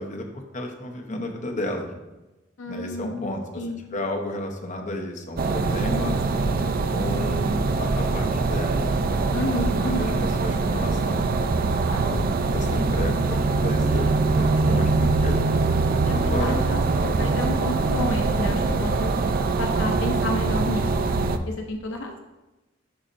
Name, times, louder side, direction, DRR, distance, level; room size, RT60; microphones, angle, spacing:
voice 1, 0.0-1.9 2.7-3.6 3.9-6.2 6.9-9.2 9.4-11.3 11.9-12.2 12.4-14.1 14.4-15.4 16.1-16.6, left 1 dB, 40° left, 2 dB, 0.8 m, -32 dB
voice 2, 2.6-3.9 9.3-10.2 16.1-16.8 17.2-19.1 19.6-22.2, left 1 dB, 70° left, 3 dB, 0.5 m, -31 dB
sound 1, 5.4-21.4, right 3 dB, 45° right, 0.4 m, -23 dB
11.5 x 4.2 x 2.6 m, 1.0 s
head